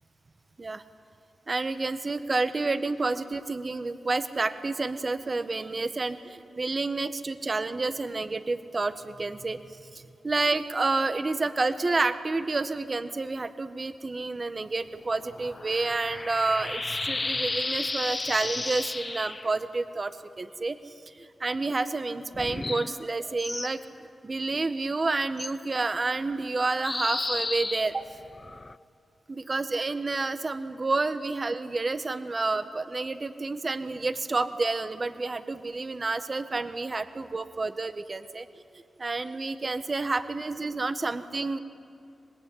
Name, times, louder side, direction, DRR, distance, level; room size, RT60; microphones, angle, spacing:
voice 1, 1.5-9.6 9.9-20.8 21.1-23.8 24.2-28.1 29.3-38.5 39.0-41.6, right 3 dB, 45° right, 10 dB, 1.4 m, -29 dB
sound 1, 15.0-19.5 22.3-23.7 25.4-25.5 26.8-28.8, left 3 dB, 40° left, 0.7 m, -33 dB
25.5 x 20.5 x 9.9 m, 2.5 s
supercardioid pair, 40°, 0 cm